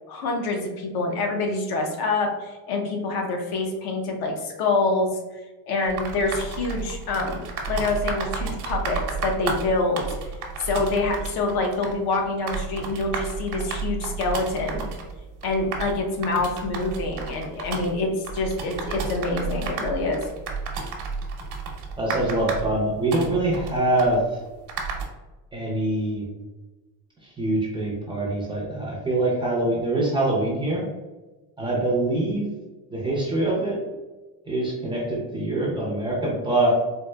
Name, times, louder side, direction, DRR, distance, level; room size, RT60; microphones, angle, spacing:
voice 1, 0.1-5.1 5.7-10.1 10.6-14.9 15.4-20.2, left 3 dB, 55° left, 2 dB, 0.7 m, -26 dB
sound 1, 5.8-25.1, right 4 dB, 60° right, 0.8 m, -32 dB
voice 2, 22.0-24.2 25.5-26.3 27.4-30.8 31.6-32.4 32.9-33.8 34.5-36.8, right 1 dB, 10° right, -5 dB, 0.5 m, -24 dB
4.3 x 2.4 x 2.2 m, 1.2 s
cardioid pair, 155°, 46 cm